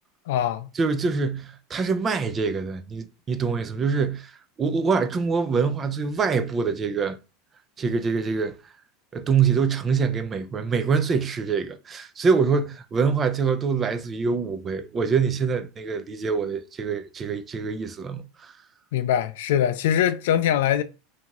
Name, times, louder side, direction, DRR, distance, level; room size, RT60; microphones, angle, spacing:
voice 1, 0.3-0.7 14.3-14.4 18.9-20.8, left 10 dB, 80° left, 0.3 m, -22 dB
voice 2, 0.8-4.3 4.6-7.2 7.8-8.5 9.1-18.5, right 5 dB, 20° right, 0.3 m, -25 dB
2.7 x 2.3 x 2.9 m
supercardioid pair, 145°, 0 cm